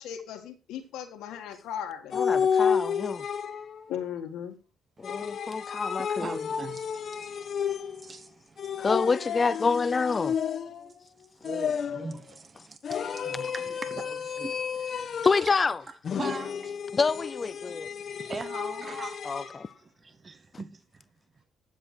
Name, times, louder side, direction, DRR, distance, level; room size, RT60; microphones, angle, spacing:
voice 1, 0.0-2.2 3.9-4.6, left 9 dB, 90° left, 2.0 m, -37 dB
sound 1, 2.1-3.8 5.0-8.1 8.6-10.9 11.4-12.2 12.8-15.6 16.0-19.6, left 7 dB, 55° left, 1.2 m, -31 dB
voice 2, 2.1-3.2 5.0-6.4 8.8-10.3 15.2-15.8 16.9-17.9 19.2-19.7, left 4 dB, 35° left, 0.6 m, -27 dB
voice 3, 6.2-8.9 11.4-15.5 16.2-16.8 17.7-19.2 19.8-21.0, right 4 dB, 35° right, 1.1 m, -42 dB
voice 4, 9.3-9.8 10.2-11.1 15.8-15.9 17.3-17.4 18.8-19.4 19.7-20.6 21.2-21.4, right 2 dB, 80° right, 6.4 m, -58 dB
10.5 x 7.5 x 4.5 m
cardioid pair, 90°, 0 cm